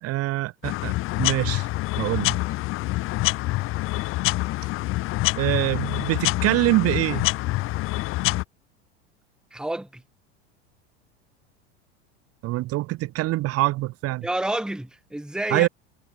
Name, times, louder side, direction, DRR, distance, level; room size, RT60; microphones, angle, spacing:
voice 1, 0.0-0.9 1.2-1.7 2.0-2.4 5.4-7.2 12.4-14.3 15.5-15.7, right 18 dB, 45° right, 1.2 m, -24 dB
sound 1, 0.6-8.4, left 19 dB, 40° left, 0.6 m, -26 dB
voice 2, 9.5-10.0 14.2-15.7, right 1 dB, ahead, 1.3 m, -29 dB
hypercardioid pair, 90°, 33 cm